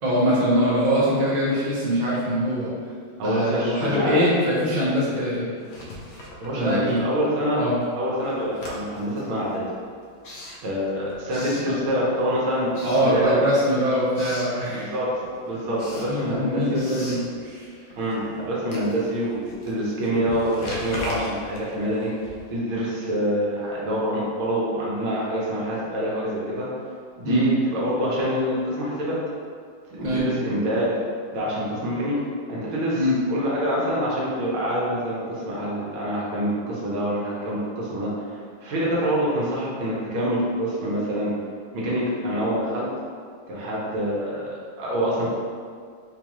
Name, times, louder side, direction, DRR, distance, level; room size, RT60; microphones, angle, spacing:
voice 1, 0.0-2.7 3.2-5.5 6.5-7.0 7.5-7.7 11.6-11.7 12.8-14.9 16.1-17.7 27.2-27.5 30.0-30.3 32.9-33.2, equal, 50° right, -8 dB, 0.5 m, -23 dB
voice 2, 3.2-4.3 6.4-7.6 8.0-9.7 10.6-12.7 13.0-13.3 14.7-15.1 15.4-16.8 18.0-22.1 22.5-26.7 27.2-29.2 29.9-31.0 31.3-32.1 32.5-33.0 33.3-38.1 38.6-41.3 41.7-42.9 43.5-45.3, equal, 85° right, -6 dB, 1.7 m, -26 dB
Writing, 5.6-7.2 7.5-12.3 12.7-13.7 13.9-14.6 15.0-22.7, left 1 dB, 85° left, 1.5 m, -40 dB
4.5 x 2.4 x 2.9 m, 2.1 s
omnidirectional pair, 2.2 m